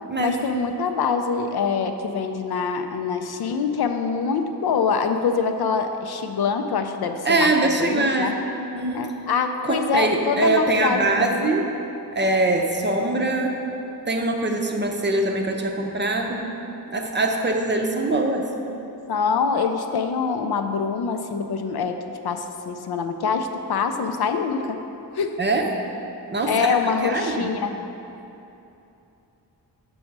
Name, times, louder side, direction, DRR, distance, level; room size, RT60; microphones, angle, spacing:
voice 1, 0.0-8.3 8.9-11.6 19.1-22.0 22.2-24.8 25.1-25.3 26.4-27.7, left 5 dB, 70° left, 6 dB, 0.5 m, -25 dB
voice 2, 7.2-8.3 8.7-9.1 9.6-11.7 12.1-13.6 14.1-16.5 16.9-18.5 25.4-25.7 26.3-27.5, right 2 dB, 25° right, 1 dB, 0.6 m, -23 dB
6.2 x 5.4 x 4.6 m, 2.9 s
wide cardioid pair, 105°, 40 cm